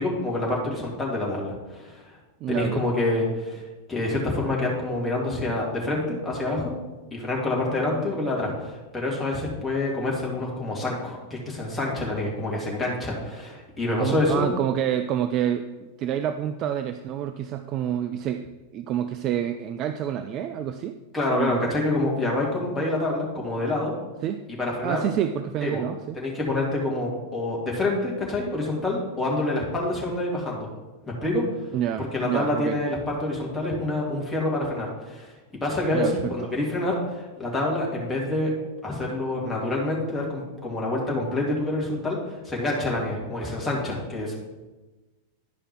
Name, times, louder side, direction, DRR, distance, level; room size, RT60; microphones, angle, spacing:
voice 1, 0.0-2.2 2.5-6.7 7.1-14.5 21.1-24.0 24.6-25.0 25.6-25.8 26.2-30.7 31.2-31.4 32.1-35.3 35.6-38.5 38.8-44.4, left 2 dB, 10° left, -4 dB, 2.2 m, -27 dB
voice 2, 2.4-2.8 14.0-21.0 21.3-21.6 24.2-24.4 24.8-26.2 31.7-32.8 35.9-36.5, right 10 dB, 35° right, 9 dB, 0.3 m, -28 dB
10.5 x 5.0 x 4.5 m, 1.2 s
figure-of-eight pair, 90°, 0 cm